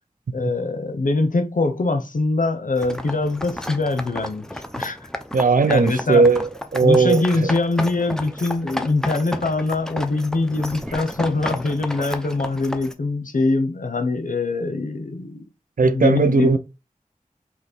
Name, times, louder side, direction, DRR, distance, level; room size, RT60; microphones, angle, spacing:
voice 1, 0.3-4.4 4.8-5.1 5.7-6.3 6.8-15.5 15.8-16.6, left 3 dB, 75° left, 0.7 m, -23 dB
sound 1, 2.8-12.9, left 1 dB, 5° left, 0.6 m, -32 dB
voice 2, 5.3-7.5 15.8-16.6, right 4 dB, 85° right, 0.5 m, -17 dB
3.9 x 2.9 x 4.2 m
wide cardioid pair, 40°, 14 cm